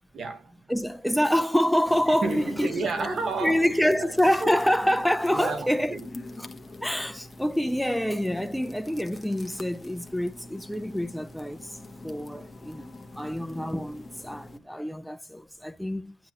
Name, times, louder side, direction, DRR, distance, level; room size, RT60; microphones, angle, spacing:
voice 1, 0.1-0.6 2.1-4.5 5.3-6.1, right 4 dB, 50° right, 1.6 m, -32 dB
voice 2, 0.7-2.7 3.4-6.0 6.8-11.6 12.0-12.9 13.2-16.2, equal, ahead, 0.6 m, -26 dB
sound 1, 1.9-14.6, left 2 dB, 15° left, 1.3 m, -44 dB
11.5 x 8.0 x 3.1 m
cardioid pair, 90°, 0 cm